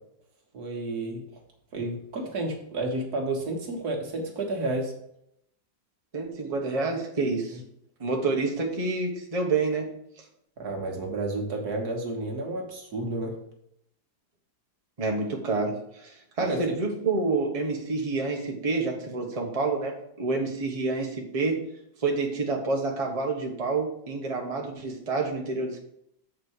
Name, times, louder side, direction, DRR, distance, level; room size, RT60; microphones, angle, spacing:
voice 1, 0.5-1.2 1.7-4.9 10.6-13.4 16.4-16.8, right 2 dB, 65° right, 1 dB, 2.0 m, -31 dB
voice 2, 6.1-7.6 8.0-9.9 15.0-21.5 22.0-25.8, right 3 dB, 25° right, 0 dB, 1.2 m, -28 dB
7.9 x 4.2 x 6.4 m, 0.75 s
omnidirectional pair, 1.8 m